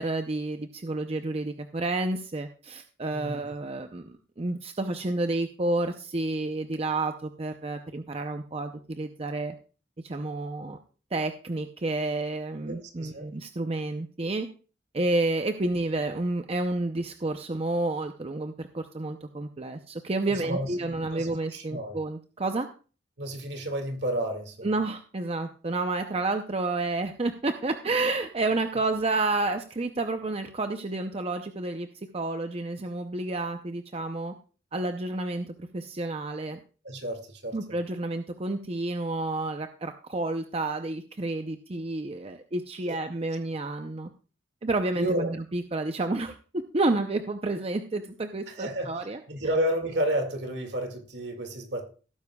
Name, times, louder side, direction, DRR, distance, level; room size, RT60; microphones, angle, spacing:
voice 1, 0.0-9.5 10.0-10.8 11.1-14.5 14.9-22.7 24.6-31.9 32.1-34.3 34.7-36.6 37.5-44.1 44.6-49.2, right 2 dB, 35° right, 7 dB, 0.6 m, -30 dB
voice 2, 12.7-13.3 20.4-22.0 23.2-24.7 36.8-37.8 42.9-43.0 44.9-45.3 48.5-49.0 49.3-51.9, right 1 dB, 65° right, 5 dB, 2.1 m, -31 dB
17.5 x 9.5 x 2.3 m, 0.36 s
head